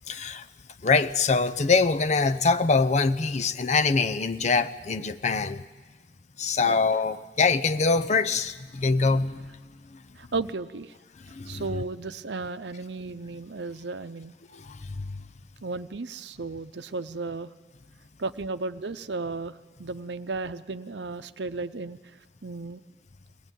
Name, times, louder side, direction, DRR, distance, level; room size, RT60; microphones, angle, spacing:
voice 1, 0.1-0.5 0.8-5.6 6.4-9.6 9.9-10.0 11.2-11.8 14.5-15.2, left 4 dB, 40° left, 10 dB, 0.6 m, -24 dB
voice 2, 10.2-10.9 11.5-14.3 15.6-17.5 18.2-22.0 22.4-22.8, right 3 dB, 80° right, 11 dB, 0.8 m, -34 dB
22.5 x 17.5 x 9.1 m, 1.3 s
head